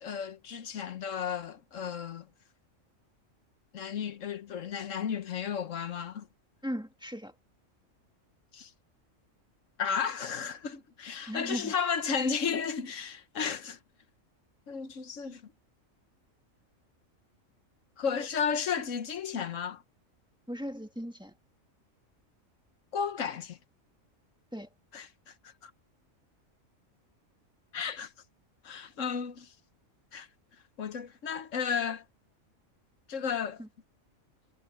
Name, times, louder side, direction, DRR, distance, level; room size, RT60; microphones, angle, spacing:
voice 1, 0.0-2.3 3.7-6.3 8.5-8.7 9.8-13.8 14.7-15.4 18.0-19.8 22.9-23.6 24.9-25.7 27.7-28.1 28.6-29.5 30.1-30.3 30.8-32.0 33.1-33.6, left 6 dB, 70° left, 1.4 m, -33 dB
voice 2, 6.6-7.3 11.3-11.7 20.5-21.3 24.5-24.7 33.6-33.7, equal, 5° right, 1.7 m, -37 dB
omnidirectional pair, 1.4 m